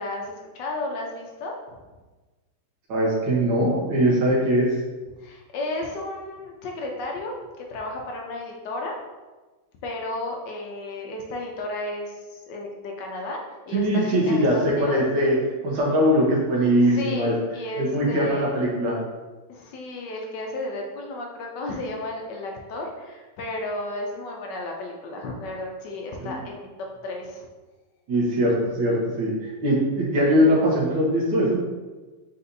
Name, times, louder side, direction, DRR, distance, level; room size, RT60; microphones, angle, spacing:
voice 1, 0.0-1.8 5.2-9.0 9.8-15.0 16.8-18.5 19.5-26.7 27.0-27.5, left 2 dB, 70° left, 1 dB, 1.2 m, -33 dB
voice 2, 2.9-4.7 13.7-15.4 15.6-17.3 17.8-19.0 26.2-26.3 28.1-31.6, equal, 70° right, -4 dB, 1.7 m, -21 dB
4.3 x 4.1 x 2.6 m, 1.2 s
omnidirectional pair, 2.1 m